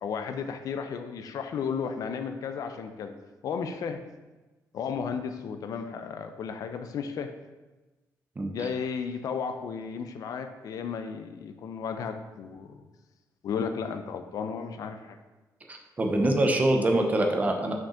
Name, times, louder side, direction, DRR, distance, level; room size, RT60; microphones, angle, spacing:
voice 1, 0.0-3.1 3.4-4.0 4.7-7.3 8.5-12.8 13.4-15.2, left 6 dB, 60° left, 7 dB, 0.6 m, -34 dB
voice 2, 8.4-8.7 15.7-17.7, right 1 dB, 25° right, 3 dB, 0.9 m, -25 dB
6.0 x 5.1 x 5.0 m, 1.2 s
cardioid pair, 150°, 7 cm